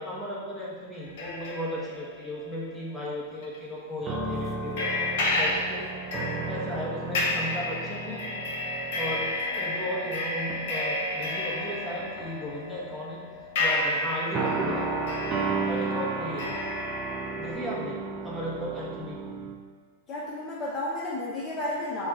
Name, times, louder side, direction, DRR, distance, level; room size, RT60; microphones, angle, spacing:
voice 1, 0.0-4.9 5.3-5.9 6.5-8.3 8.9-13.2 13.6-14.9 15.6-16.5 17.4-19.2, left 1 dB, ahead, -7 dB, 1.0 m, -35 dB
sound 1, 0.9-3.0 3.4-3.6 4.8-17.5, left 2 dB, 65° left, 1.1 m, -32 dB
sound 2, 4.0-10.1 10.5-10.8 11.7-12.5 14.3-19.5, right 3 dB, 25° right, 0.5 m, -33 dB
voice 2, 20.1-22.1, left 1 dB, 25° left, -5 dB, 0.7 m, -32 dB
4.4 x 2.4 x 4.1 m, 1.5 s
hypercardioid pair, 120°, 0 cm